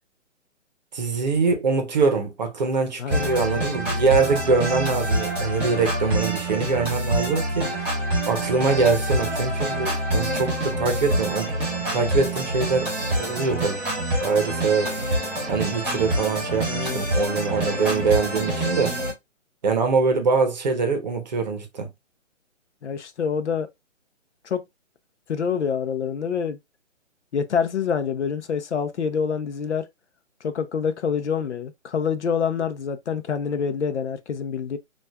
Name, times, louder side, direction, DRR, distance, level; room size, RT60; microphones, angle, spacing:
voice 1, 0.9-7.7 8.3-11.5 11.9-12.9 13.2-13.8 14.2-15.2 15.5-18.9 19.6-21.9, right 4 dB, 35° right, 0.8 m, -23 dB
voice 2, 3.0-3.3 16.7-17.0 22.8-23.7 24.4-24.6 25.3-26.6 27.3-29.9 30.4-34.8, left 6 dB, 65° left, 0.7 m, -26 dB
sound 1, 3.1-19.1, right 1 dB, 5° right, 1.5 m, -26 dB
6.1 x 2.4 x 2.2 m
hypercardioid pair, 160°, 38 cm